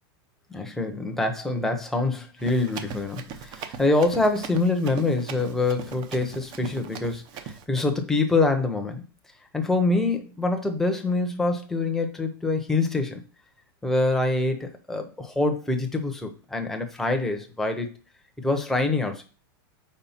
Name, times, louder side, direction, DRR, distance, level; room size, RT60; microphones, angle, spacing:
voice 1, 0.5-9.0 9.5-13.2 13.8-17.9 18.4-19.2, left 2 dB, 5° left, 4 dB, 0.8 m, -25 dB
Run, 2.4-7.6, right 7 dB, 35° right, 0.7 m, -39 dB
4.8 x 4.3 x 5.6 m, 0.37 s
supercardioid pair, 150°, 12 cm